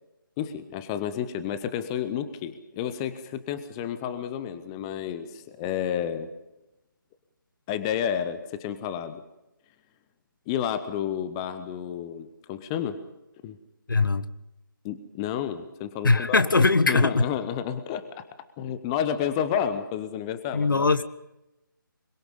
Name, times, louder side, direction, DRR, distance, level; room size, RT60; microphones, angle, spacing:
voice 1, 0.4-6.3 7.7-9.2 10.5-13.0 13.4-13.6 14.8-18.3 18.6-20.9, left 9 dB, 15° left, 12 dB, 0.7 m, -31 dB
voice 2, 13.9-14.3 16.0-17.2 20.5-21.0, left 3 dB, 70° left, 14 dB, 1.2 m, -21 dB
23.0 x 21.5 x 5.5 m, 0.91 s
figure-of-eight pair, 155°, 11 cm